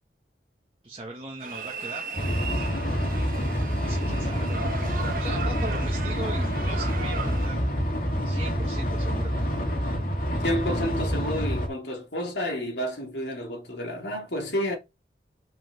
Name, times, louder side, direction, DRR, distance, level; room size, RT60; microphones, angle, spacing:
voice 1, 0.8-2.2 2.5-2.6 3.7-7.6 8.2-9.3, right 2 dB, 30° right, 1.6 m, -39 dB
sound 1, 1.4-7.5, right 4 dB, 50° right, 1.3 m, -37 dB
sound 2, 2.2-11.7, equal, 50° left, 2.4 m, -27 dB
voice 2, 10.4-14.8, equal, 75° left, 2.9 m, -30 dB
5.9 x 5.2 x 5.9 m
head